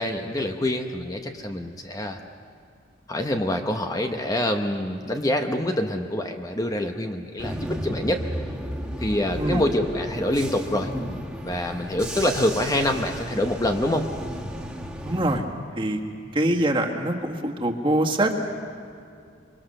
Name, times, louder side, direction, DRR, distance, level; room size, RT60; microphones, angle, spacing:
voice 1, 0.0-2.2 3.1-8.2 9.0-10.9 11.4-14.1, left 1 dB, 20° left, 4 dB, 0.9 m, -26 dB
Bus / Engine, 7.4-15.4, equal, 5° right, 2.0 m, -33 dB
voice 2, 9.4-9.7 15.0-15.4 15.8-16.0 16.3-18.4, right 1 dB, 30° right, 1 dB, 1.7 m, -24 dB
25.0 x 23.5 x 6.6 m, 2.4 s
head